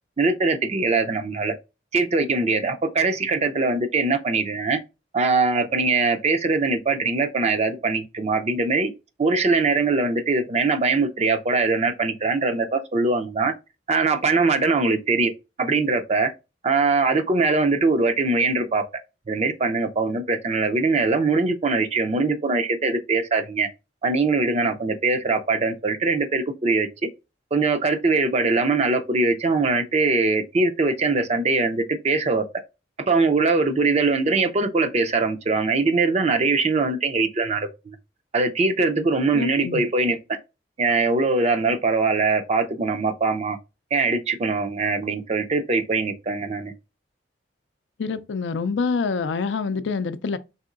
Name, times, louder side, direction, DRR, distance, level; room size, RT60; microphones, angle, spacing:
voice 1, 0.2-1.5 1.9-4.8 5.1-8.9 9.2-13.5 13.9-15.3 15.6-16.3 16.6-18.8 19.3-23.7 24.0-26.9 27.5-32.4 33.1-38.0 38.3-40.2 40.8-43.6 43.9-46.7, right 3 dB, 35° right, 0.5 m, -22 dB
voice 2, 39.3-39.8 48.0-50.4, left 4 dB, 90° left, 0.4 m, -26 dB
4.1 x 3.7 x 2.4 m
head